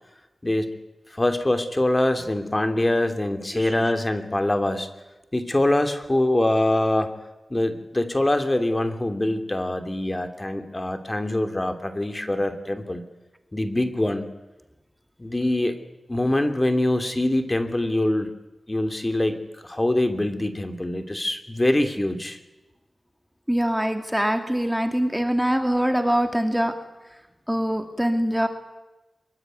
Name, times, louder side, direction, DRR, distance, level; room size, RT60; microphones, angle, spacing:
voice 1, 0.4-0.7 1.2-4.9 5.3-7.1 7.5-13.0 13.5-14.2 15.2-15.7 16.1-18.3 18.7-22.4, left 1 dB, 25° left, 8 dB, 2.9 m, -24 dB
voice 2, 3.5-3.9 23.5-26.8 27.5-28.5, equal, 5° right, 6 dB, 2.4 m, -23 dB
24.5 x 23.0 x 9.3 m, 1.1 s
wide cardioid pair, 70°, 0 cm